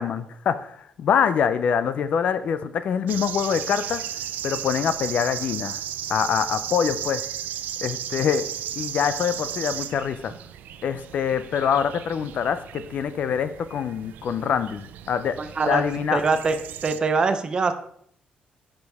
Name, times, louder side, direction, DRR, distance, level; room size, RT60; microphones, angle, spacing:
voice 1, 0.0-4.0 4.4-5.8 6.1-7.2 7.8-8.4 8.8-10.3 10.8-15.3 15.7-16.2, left 7 dB, 50° left, 12 dB, 0.5 m, -25 dB
sound 1, 3.1-17.0, right 10 dB, 85° right, 0.5 m, -35 dB
voice 2, 15.4-15.8 16.1-16.6 16.8-17.7, right 4 dB, 30° right, 9 dB, 0.6 m, -23 dB
10.5 x 5.2 x 3.5 m, 0.67 s
cardioid pair, 170°, 3 cm